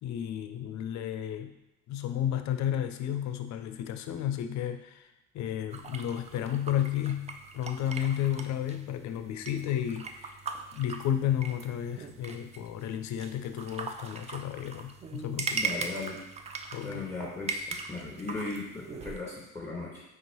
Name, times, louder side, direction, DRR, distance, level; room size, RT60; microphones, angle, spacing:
voice 1, 0.0-1.6 1.9-5.1 5.3-10.4 10.7-15.6 16.7-17.1, left 10 dB, 45° left, 9 dB, 0.5 m, -32 dB
sound 1, 5.7-19.2, right 4 dB, 20° right, 0.3 m, -40 dB
voice 2, 15.5-16.2 16.8-20.0, left 3 dB, 5° left, -5 dB, 1.6 m, -37 dB
5.2 x 3.4 x 2.9 m, 0.96 s
figure-of-eight pair, 45°, 41 cm